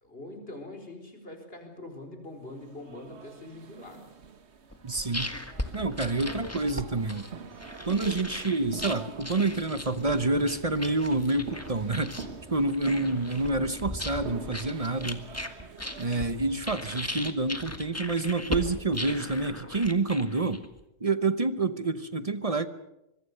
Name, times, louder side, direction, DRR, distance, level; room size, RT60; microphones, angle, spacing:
voice 1, 0.0-4.1, left 2 dB, 45° left, 4 dB, 4.8 m, -44 dB
sound 1, 2.5-17.2, right 5 dB, 55° right, 1.5 m, -45 dB
sound 2, 4.7-20.8, left 1 dB, 10° left, 1.6 m, -38 dB
voice 2, 4.8-5.3 5.7-7.3 7.9-12.2 12.5-15.2 16.0-20.6 21.0-22.7, right 2 dB, 30° right, 12 dB, 0.9 m, -28 dB
sound 3, 9.7-15.0, equal, 10° right, 4.3 m, -53 dB
24.5 x 22.5 x 6.7 m, 0.90 s
omnidirectional pair, 1.3 m